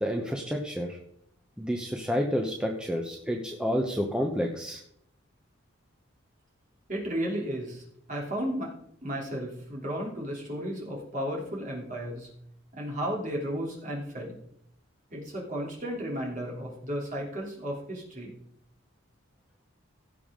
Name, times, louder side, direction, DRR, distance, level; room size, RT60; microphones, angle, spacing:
voice 1, 0.0-1.0 1.6-4.8, equal, 5° right, 2 dB, 0.8 m, -29 dB
voice 2, 6.9-8.7 9.0-12.3 12.7-14.4 15.1-18.3, equal, 35° right, -2 dB, 3.0 m, -34 dB
16.5 x 7.0 x 3.7 m, 0.71 s
head